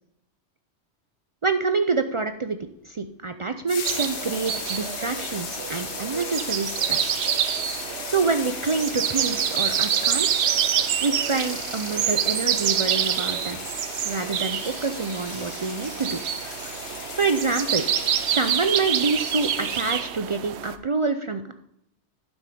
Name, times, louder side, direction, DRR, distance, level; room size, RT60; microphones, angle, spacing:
voice 1, 1.4-2.6 2.8-7.2 8.0-10.5 11.0-13.6 14.0-16.2 17.2-17.9 18.3-21.5, right 4 dB, 55° right, 8 dB, 0.3 m, -27 dB
sound 1, 3.7-20.0, left 7 dB, 55° left, 0.9 m, -37 dB
sound 2, 3.8-20.8, right 9 dB, 75° right, 0.9 m, -27 dB
11.5 x 6.2 x 5.0 m, 0.77 s
omnidirectional pair, 1.2 m